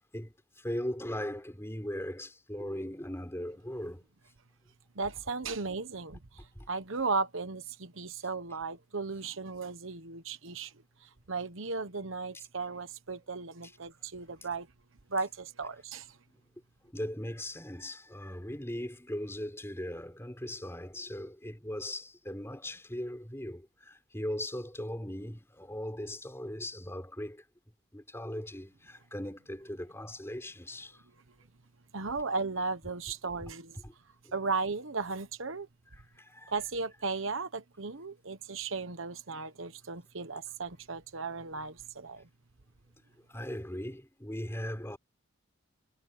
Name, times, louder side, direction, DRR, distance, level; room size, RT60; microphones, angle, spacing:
voice 1, 0.1-4.0 6.5-6.7 12.3-12.4 13.6-13.7 16.8-27.4 27.9-31.0 33.8-33.9 34.2-34.4 35.9-36.6 43.3-45.0, left 1 dB, 10° left, 4.7 m, -39 dB
voice 2, 5.0-6.2 6.7-10.7 11.3-14.7 15.1-16.1 31.9-33.8 34.3-35.7 36.5-42.3, right 4 dB, 65° right, 1.2 m, -35 dB
head